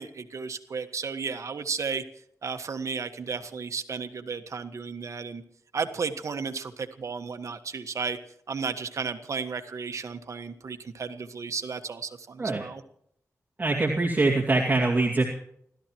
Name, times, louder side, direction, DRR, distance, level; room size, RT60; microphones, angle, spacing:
voice 1, 0.0-2.0 2.4-5.4 5.7-8.2 8.5-12.8, right 5 dB, 60° right, 8 dB, 1.5 m, -33 dB
voice 2, 13.6-15.2, right 2 dB, 30° right, -2 dB, 2.3 m, -23 dB
29.5 x 13.5 x 3.1 m, 0.70 s
wide cardioid pair, 150°, 6 cm